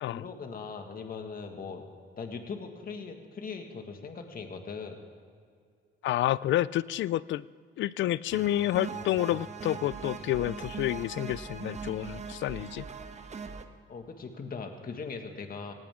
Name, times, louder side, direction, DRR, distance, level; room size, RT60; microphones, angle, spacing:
voice 1, 0.1-1.8 2.2-5.0 13.9-15.7, left 5 dB, 45° left, 4 dB, 1.9 m, -40 dB
voice 2, 6.0-7.4 7.8-12.8, left 14 dB, 70° left, 20 dB, 0.4 m, -29 dB
sound 1, 8.3-13.6, right 5 dB, 35° right, 1.2 m, -40 dB
19.0 x 17.0 x 3.7 m, 2.1 s
cardioid pair, 90°, 20 cm